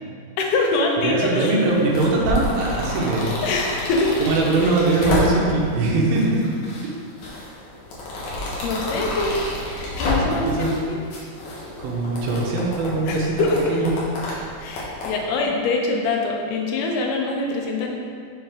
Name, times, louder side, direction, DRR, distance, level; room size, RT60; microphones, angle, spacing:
voice 1, 0.4-1.6 3.4-4.1 4.6-4.7 8.6-9.4 10.0-11.0 13.1-13.8 14.6-17.9, left 3 dB, 90° left, 1 dB, 2.8 m, -24 dB
voice 2, 1.0-3.3 4.2-6.4 10.3-10.8 11.8-13.9, right 2 dB, 75° right, -2 dB, 2.6 m, -21 dB
sound 1, 1.6-5.6 6.1-6.8 7.2-10.8 11.1-15.1, left 1 dB, 60° left, 2.5 m, -29 dB
6.9 x 6.2 x 3.5 m, 2.3 s
omnidirectional pair, 4.4 m